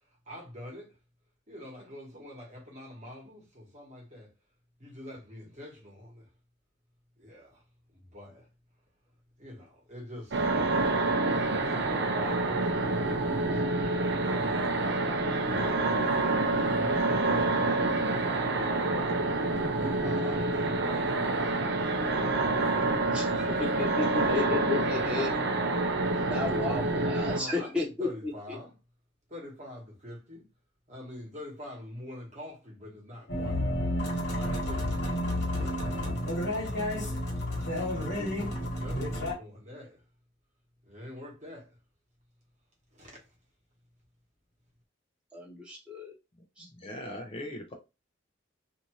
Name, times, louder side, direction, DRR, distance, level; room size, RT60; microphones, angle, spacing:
voice 1, 0.3-1.0 1.5-4.3 4.8-6.3 7.2-7.6 7.9-8.5 9.4-10.5 11.0-13.6 14.1-14.8 15.3-16.2 16.7-19.2 19.8-21.9 22.6-24.3 24.9-25.3 26.1-26.5 27.3-28.7 29.3-30.4 30.9-33.7 34.3-36.1 38.0-40.0 40.8-41.8 42.9-43.3, left 1 dB, 35° right, 1.2 m, -44 dB
sound 1, 10.3-27.4, right 2 dB, 60° right, 0.5 m, -27 dB
voice 2, 23.1-25.3 26.2-28.6 38.2-38.5 45.3-46.1 46.6-46.7, left 3 dB, 5° right, 1.0 m, -33 dB
sound 2, 33.3-39.3, left 1 dB, 60° left, 1.4 m, -31 dB
voice 3, 46.6-47.7, left 1 dB, 30° left, 0.5 m, -40 dB
2.7 x 2.5 x 3.0 m
head